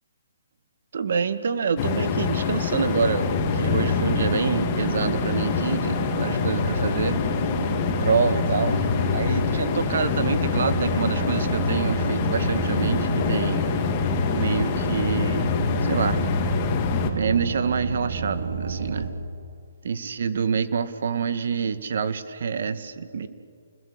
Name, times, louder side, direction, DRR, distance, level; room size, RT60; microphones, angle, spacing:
voice 1, 0.9-7.2 8.0-8.8 9.1-13.7 14.3-15.5 15.8-16.2 17.1-19.1 19.8-23.3, right 6 dB, 65° right, 11 dB, 2.1 m, -26 dB
sound 1, 1.8-17.1, left 7 dB, 30° left, 3.0 m, -26 dB
sound 2, 3.2-19.1, right 5 dB, 80° right, 5.1 m, -30 dB
30.0 x 21.0 x 8.7 m, 2.2 s
hypercardioid pair, 150°, 0 cm